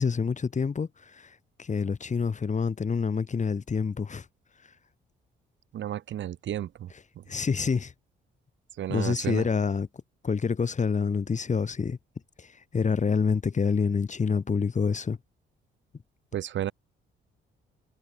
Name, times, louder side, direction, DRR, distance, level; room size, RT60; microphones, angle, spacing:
voice 1, 0.0-4.2 7.3-7.9 8.9-9.9 10.2-12.0 12.4-15.2, left 5 dB, 35° left, 6.2 m, -27 dB
voice 2, 5.7-6.9 7.2-7.3 8.8-9.5 16.3-16.7, right 11 dB, 70° right, 2.3 m, -32 dB
cardioid pair, 90°, 20 cm